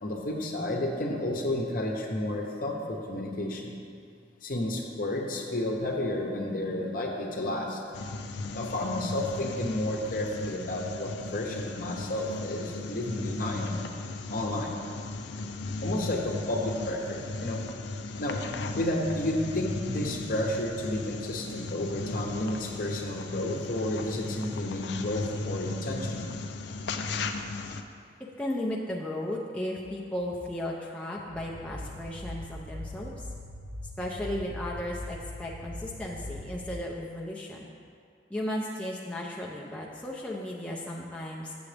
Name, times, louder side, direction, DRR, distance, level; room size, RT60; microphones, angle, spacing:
voice 1, 0.0-3.7 4.4-7.8 8.5-13.7 14.3-14.7 15.8-17.7 18.2-18.4 18.7-26.3, left 1 dB, 50° left, 1 dB, 0.8 m, -31 dB
sound 1, 7.9-27.8, left 3 dB, 70° left, 0.4 m, -36 dB
voice 2, 28.4-33.3 34.0-37.7 38.3-41.5, left 1 dB, 5° left, -4 dB, 0.5 m, -35 dB
sound 2, 31.3-36.8, left 1 dB, 55° right, 0.7 m, -41 dB
8.1 x 7.0 x 3.3 m, 2.3 s
head